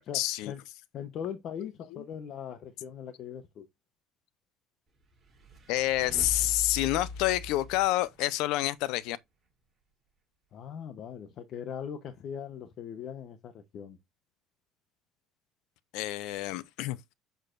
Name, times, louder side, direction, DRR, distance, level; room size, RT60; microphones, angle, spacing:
voice 1, 0.1-0.5 1.6-1.7 5.7-9.2 15.9-17.0, left 16 dB, 80° left, 0.6 m, -28 dB
voice 2, 0.9-3.6 10.5-14.0, left 8 dB, 50° left, 0.9 m, -40 dB
sound 1, 5.1-8.7, left 2 dB, 20° right, 4.8 m, -41 dB
7.9 x 6.5 x 2.5 m
cardioid pair, 140°, 0 cm